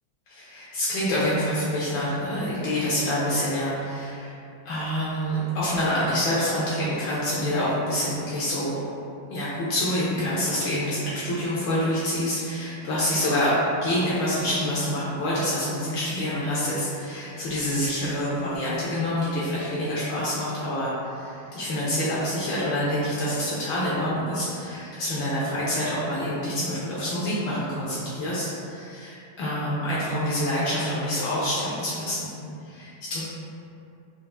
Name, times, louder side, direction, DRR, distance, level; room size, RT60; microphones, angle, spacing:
voice 1, 0.3-4.4 4.6-8.7 9.3-13.5 13.8-32.3 32.7-33.2, equal, 70° left, -9 dB, 1.2 m, -27 dB
4.4 x 2.3 x 2.3 m, 2.5 s
omnidirectional pair, 2.2 m